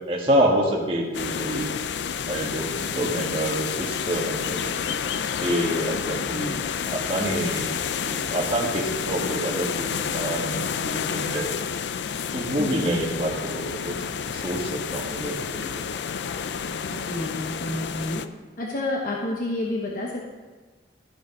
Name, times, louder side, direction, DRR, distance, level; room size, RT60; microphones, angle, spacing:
voice 1, 0.0-1.7 2.3-5.0 5.4-7.7 8.0-11.5 12.3-15.8, right 1 dB, 30° right, -4 dB, 1.4 m, -27 dB
sound 1, 1.1-18.3, left 7 dB, 75° left, 0.4 m, -30 dB
voice 2, 12.6-12.9 16.8-18.2 18.6-20.3, left 1 dB, 50° left, -3 dB, 1.1 m, -30 dB
13.5 x 5.0 x 5.3 m, 1.3 s
head